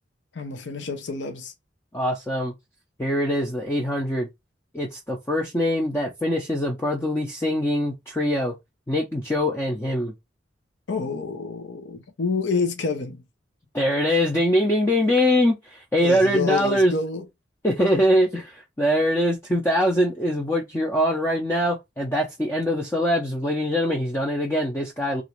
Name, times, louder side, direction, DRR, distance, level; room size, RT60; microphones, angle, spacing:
voice 1, 0.3-1.5 10.9-13.2 16.0-17.2, left 4 dB, 75° left, 0.6 m, -28 dB
voice 2, 1.9-2.5 3.0-4.3 4.7-8.5 8.9-10.1 13.7-16.9 17.6-25.2, equal, 15° left, 0.5 m, -23 dB
2.9 x 2.5 x 2.9 m
head